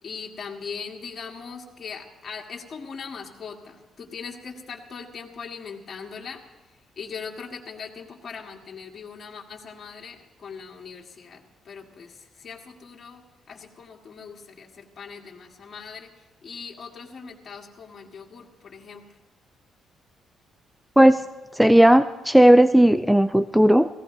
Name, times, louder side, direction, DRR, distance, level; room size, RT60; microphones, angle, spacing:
voice 1, 0.0-6.4 7.0-19.1, left 5 dB, 40° left, -1 dB, 1.9 m, -40 dB
voice 2, 21.6-23.9, right 1 dB, 5° right, 12 dB, 0.4 m, -15 dB
17.0 x 15.5 x 3.9 m, 1.1 s
cardioid pair, 90°, 0 cm